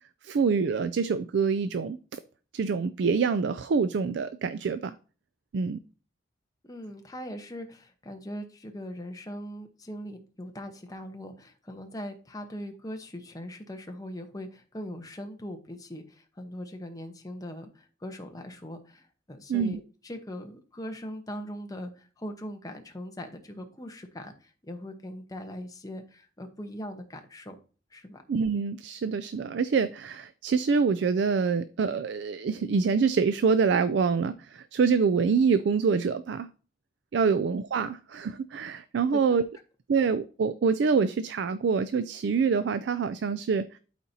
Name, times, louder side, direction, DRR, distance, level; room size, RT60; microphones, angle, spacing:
voice 1, 0.2-2.2 2.5-4.9 5.5-5.8 19.5-19.8 28.3-36.5 37.1-39.4 39.9-43.7, right 5 dB, 65° right, 13 dB, 0.4 m, -26 dB
voice 2, 6.7-27.6 27.9-28.2 37.2-37.4 39.1-39.4 39.9-40.1, equal, 20° left, 4 dB, 0.9 m, -40 dB
12.0 x 4.3 x 2.7 m, 0.38 s
head